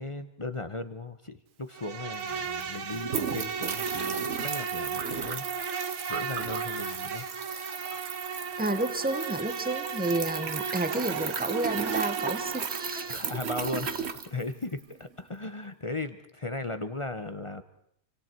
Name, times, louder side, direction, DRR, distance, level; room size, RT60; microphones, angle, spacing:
voice 1, 0.0-5.4 6.1-7.2 13.0-17.6, left 2 dB, 30° left, 10 dB, 0.5 m, -37 dB
Insect, 1.7-13.2, right 6 dB, 75° right, 2.2 m, -35 dB
sound 1, 1.9-2.0 2.1-14.9, right 6 dB, 40° right, 1.0 m, -36 dB
voice 2, 8.6-13.3, right 2 dB, 5° right, 10 dB, 0.8 m, -31 dB
28.5 x 25.5 x 4.6 m, 0.69 s
omnidirectional pair, 2.3 m